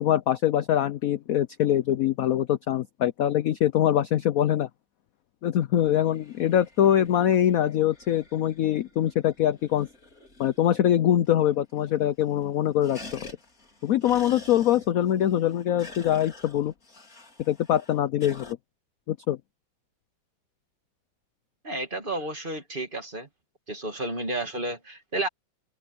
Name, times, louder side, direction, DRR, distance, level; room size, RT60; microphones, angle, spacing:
voice 1, 0.0-4.7 5.4-9.9 10.4-13.3 13.8-16.7 17.5-18.6 19.1-19.4, left 11 dB, 70° left, 0.8 m, -23 dB
sound 1, 5.6-10.9 11.3-11.4 11.6-12.1 12.4-18.5, left 2 dB, 45° left, 4.6 m, -48 dB
voice 2, 21.6-23.3 23.7-25.3, right 2 dB, 25° right, 2.2 m, -31 dB
omnidirectional pair, 2.2 m